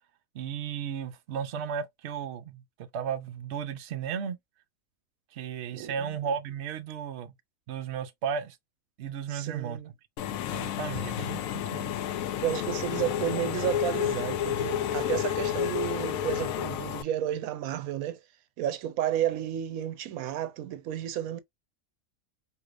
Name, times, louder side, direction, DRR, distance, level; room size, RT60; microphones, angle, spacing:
voice 1, 0.3-4.4 5.3-7.3 7.7-8.6 9.0-9.8 10.5-11.9, right 7 dB, 60° right, 0.9 m, -34 dB
voice 2, 5.7-6.2 9.3-9.9 12.4-18.2 18.6-21.4, right 11 dB, 85° right, 1.0 m, -32 dB
Engine / Mechanisms, 10.2-17.0, left 10 dB, 80° left, 1.0 m, -31 dB
4.8 x 2.8 x 2.5 m
omnidirectional pair, 1.4 m